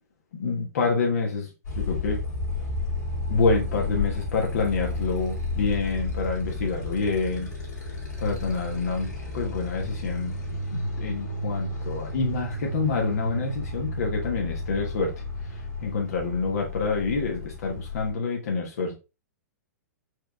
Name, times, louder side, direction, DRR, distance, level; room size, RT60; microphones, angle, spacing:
voice 1, 0.3-2.2 3.3-7.5 8.2-10.4 10.7-15.1 15.4-18.9, left 4 dB, 65° left, 0 dB, 1.1 m, -27 dB
Motorcycle, 1.6-18.1, left 2 dB, 80° left, 2.3 m, -32 dB
4.8 x 4.7 x 2.3 m, 0.28 s
figure-of-eight pair, 110°, 9 cm